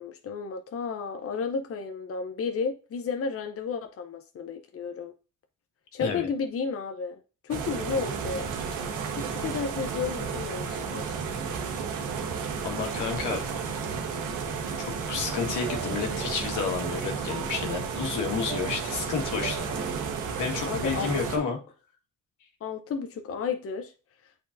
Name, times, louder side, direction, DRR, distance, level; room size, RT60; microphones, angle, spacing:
voice 1, 0.0-5.1 5.9-8.5 9.1-11.1 20.7-21.5 22.6-23.9, left 5 dB, 50° left, 0.8 m, -32 dB
sound 1, 7.5-21.4, right 5 dB, 85° right, 1.4 m, -32 dB
voice 2, 12.6-13.4 14.8-19.9 20.4-21.6, left 5 dB, 90° left, 1.7 m, -31 dB
sound 2, 14.9-21.2, right 7 dB, 55° right, 1.4 m, -43 dB
8.3 x 4.4 x 2.6 m
cardioid pair, 90°, 30 cm